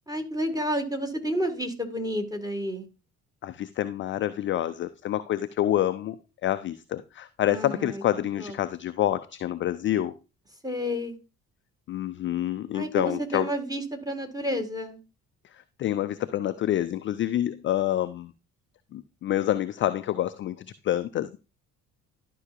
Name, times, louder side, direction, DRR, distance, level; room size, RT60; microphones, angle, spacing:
voice 1, 0.1-2.8 7.5-8.0 8.4-8.5 10.6-11.2 12.7-15.0, equal, 10° right, 5 dB, 1.7 m, -30 dB
voice 2, 3.4-10.1 11.9-13.5 15.8-18.3 18.9-21.4, left 12 dB, 30° left, 13 dB, 0.4 m, -27 dB
12.0 x 5.6 x 2.5 m, 0.31 s
figure-of-eight pair, 45°, 45 cm